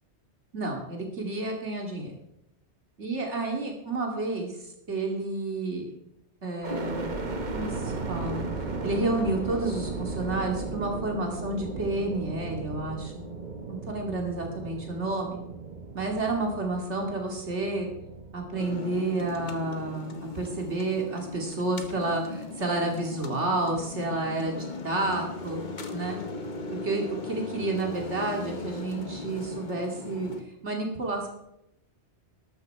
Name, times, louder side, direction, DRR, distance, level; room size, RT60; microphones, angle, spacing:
voice 1, 0.5-2.1 3.0-4.6 4.9-5.9 6.4-7.2 7.5-8.5 8.8-13.1 13.7-15.4 15.9-17.9 18.3-24.6 24.8-25.6 25.9-26.2 26.8-30.3 30.6-31.3, right 2 dB, 80° right, 1 dB, 2.8 m, -30 dB
sound 1, 6.6-20.6 21.1-21.9, right 3 dB, 40° right, 1.4 m, -36 dB
sound 2, 18.6-30.4, left 3 dB, 45° left, 1.3 m, -38 dB
13.0 x 12.0 x 4.7 m, 0.80 s
omnidirectional pair, 1.2 m